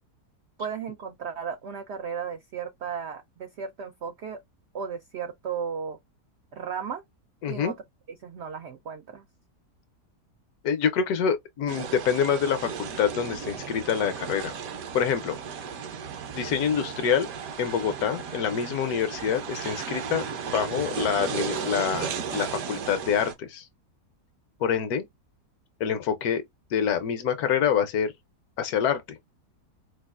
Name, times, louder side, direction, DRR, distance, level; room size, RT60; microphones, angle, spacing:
voice 1, 0.6-4.4 4.7-6.0 6.5-7.0 7.5-7.8 8.2-9.2, right 7 dB, 80° right, 0.6 m, -35 dB
voice 2, 7.4-7.7 10.6-14.5 14.9-15.4 16.3-17.3 17.6-20.2 20.5-23.7 24.6-25.0 25.8-26.4 26.7-28.1 28.6-29.2, left 7 dB, 70° left, 1.1 m, -26 dB
sound 1, 11.7-23.3, right 6 dB, 65° right, 1.1 m, -35 dB
4.6 x 2.4 x 2.3 m
omnidirectional pair, 1.8 m